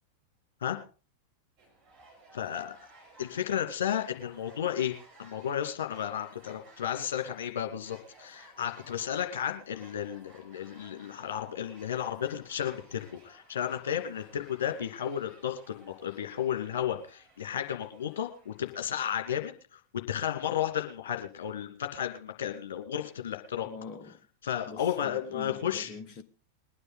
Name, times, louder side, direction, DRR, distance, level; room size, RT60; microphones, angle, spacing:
sound 1, 1.6-18.7, right 2 dB, 40° right, 5.5 m, -58 dB
voice 1, 2.3-2.8 3.2-4.9 5.2-23.7 24.4-25.9, left 9 dB, 60° left, 2.4 m, -33 dB
voice 2, 23.6-24.3 24.7-26.2, left 4 dB, 35° left, 1.0 m, -44 dB
21.5 x 9.7 x 3.8 m
figure-of-eight pair, 90°, 0 cm